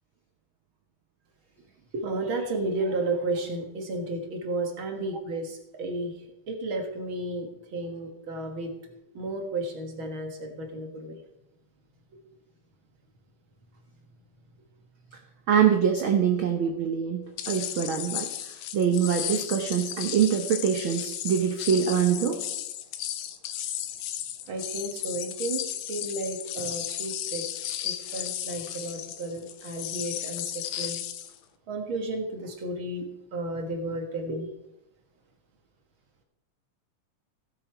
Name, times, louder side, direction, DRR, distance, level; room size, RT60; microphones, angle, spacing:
voice 1, 1.9-8.7 9.1-11.2 24.5-25.6 25.9-27.5 27.8-31.0 31.7-34.5, right 2 dB, 50° right, 3 dB, 1.9 m, -33 dB
voice 2, 15.5-22.4, right 8 dB, 85° right, 4 dB, 1.1 m, -24 dB
sound 1, 17.4-31.4, left 11 dB, 80° left, 1.9 m, -34 dB
16.5 x 7.0 x 4.6 m, 0.86 s
omnidirectional pair, 3.6 m